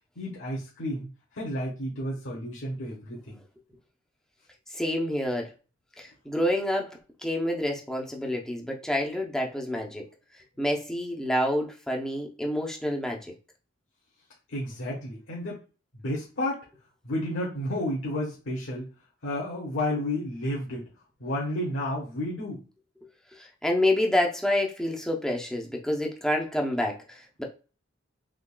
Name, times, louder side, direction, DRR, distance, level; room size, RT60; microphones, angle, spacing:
voice 1, 0.1-3.4 14.5-15.6 16.0-16.6 17.0-18.9 19.2-20.9 21.2-22.6, left 1 dB, 70° left, 1.2 m, -31 dB
voice 2, 4.7-5.5 6.0-6.9 7.2-10.0 10.6-13.2 23.3-27.4, left 1 dB, 5° left, 0.7 m, -28 dB
3.7 x 3.5 x 2.3 m
head